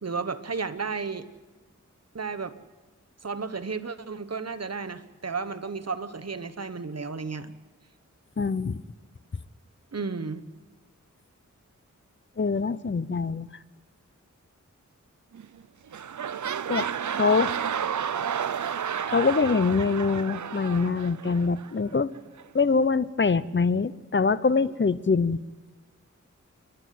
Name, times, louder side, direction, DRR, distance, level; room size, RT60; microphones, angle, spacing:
voice 1, 0.0-1.3 2.1-2.5 3.2-7.5 9.9-10.4, right 4 dB, 55° right, 10 dB, 1.2 m, -33 dB
voice 2, 8.4-8.8 12.4-13.5 16.7-17.5 19.1-22.1 22.5-25.4, left 4 dB, 40° left, 16 dB, 0.8 m, -24 dB
sound 1, 15.3-15.6 15.9-21.7 22.4-22.5, right 8 dB, 75° right, 0.6 m, -31 dB
29.5 x 11.5 x 9.3 m, 1.3 s
wide cardioid pair, 55°, 30 cm